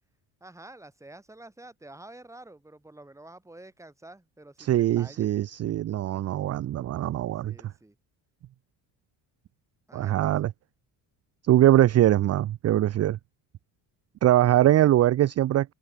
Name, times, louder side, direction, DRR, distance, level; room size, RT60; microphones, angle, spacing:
voice 1, 0.4-5.3 7.4-7.9 9.9-10.3, right 2 dB, 5° right, 1.2 m, -48 dB
voice 2, 4.6-7.7 9.9-10.5 11.4-13.2 14.2-15.7, right 13 dB, 35° right, 0.4 m, -22 dB
supercardioid pair, 80°, 49 cm